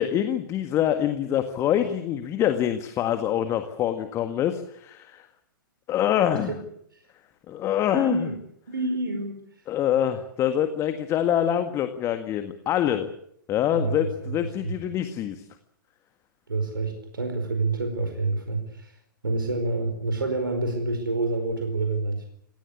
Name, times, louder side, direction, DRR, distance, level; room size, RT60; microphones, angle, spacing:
voice 1, 0.0-5.3 5.9-6.5 7.5-8.3 9.7-13.1 13.5-15.4, left 10 dB, 25° left, 8 dB, 1.7 m, -25 dB
voice 2, 7.9-8.4 8.7-9.4 10.0-10.1 13.7-14.3 14.6-14.7 16.5-19.0 19.2-22.3, right 2 dB, 75° right, 5 dB, 4.9 m, -28 dB
26.0 x 17.5 x 8.5 m, 0.71 s
figure-of-eight pair, 110°, 11 cm